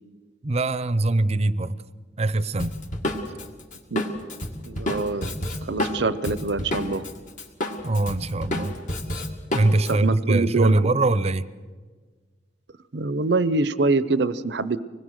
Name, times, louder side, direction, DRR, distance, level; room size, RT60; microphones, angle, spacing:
voice 1, 0.4-1.8 2.2-2.7 5.5-5.6 7.8-8.8 9.5-11.5, right 2 dB, 35° right, 16 dB, 0.7 m, -22 dB
Drum kit, 2.6-7.1 7.4-9.9, left 1 dB, 50° left, 2.2 m, -29 dB
voice 2, 4.6-5.3 5.6-7.0 9.9-10.8 12.9-14.8, right 3 dB, 75° right, 15 dB, 0.7 m, -24 dB
25.0 x 20.5 x 6.5 m, 1.5 s
head